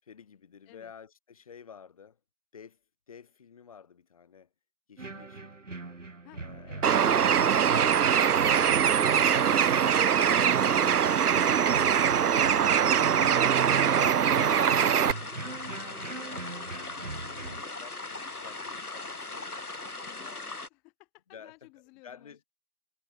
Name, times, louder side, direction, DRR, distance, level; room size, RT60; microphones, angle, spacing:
voice 1, 0.0-2.2 2.5-4.5 4.9-5.6 6.4-7.1 13.8-15.3 16.0-20.3 21.3-21.7 22.0-22.4, left 7 dB, 25° left, 7.1 m, -52 dB
sound 1, 5.0-17.6, right 3 dB, 55° right, 4.3 m, -40 dB
voice 2, 6.2-7.3 20.0-22.4, left 27 dB, ahead, 1.6 m, -57 dB
Bird, 6.8-15.1, right 8 dB, 90° right, 0.6 m, -23 dB
sound 2, 14.4-20.7, left 3 dB, 80° left, 2.7 m, -39 dB
figure-of-eight pair, 165°, 44 cm